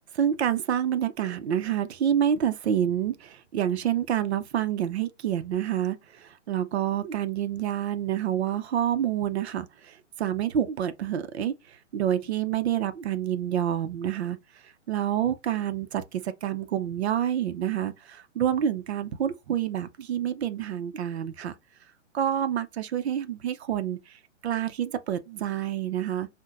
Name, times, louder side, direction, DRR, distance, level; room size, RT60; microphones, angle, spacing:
voice 1, 0.1-11.5 11.9-14.4 14.9-21.5 22.1-24.0 24.4-26.3, right 10 dB, 60° right, 0.6 m, -28 dB
5.4 x 2.2 x 2.4 m
hypercardioid pair, 140°, 38 cm